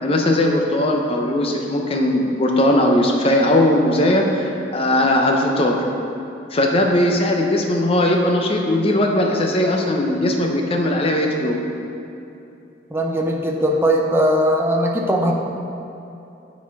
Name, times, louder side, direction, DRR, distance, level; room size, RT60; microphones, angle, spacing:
voice 1, 0.0-5.8 6.5-11.6, left 1 dB, 30° left, 1 dB, 0.7 m, -19 dB
voice 2, 12.9-15.3, equal, 15° right, 0 dB, 0.6 m, -19 dB
9.8 x 4.1 x 4.7 m, 2.8 s
head